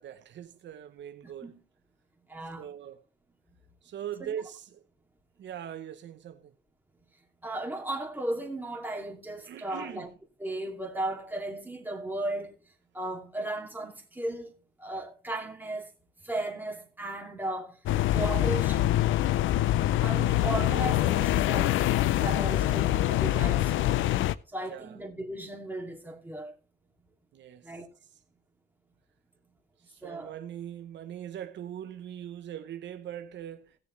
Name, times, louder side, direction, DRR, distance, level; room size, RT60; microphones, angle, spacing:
voice 1, 0.0-1.6 2.6-3.0 3.8-4.8 5.4-6.5 9.4-10.1 24.7-25.0 27.3-27.7 29.9-33.8, right 10 dB, 65° right, 0.8 m, -41 dB
voice 2, 1.2-1.6 2.3-2.7 4.2-4.3 7.4-10.1 10.4-12.5 12.9-14.5 14.8-15.9 16.2-17.8 18.1-18.9 19.9-23.9 24.5-26.6 27.6-27.9 30.0-30.3, right 1 dB, 10° right, 2.5 m, -36 dB
sound 1, 17.8-24.3, left 14 dB, 80° left, 0.5 m, -25 dB
17.0 x 6.8 x 3.2 m
cardioid pair, 90°, 20 cm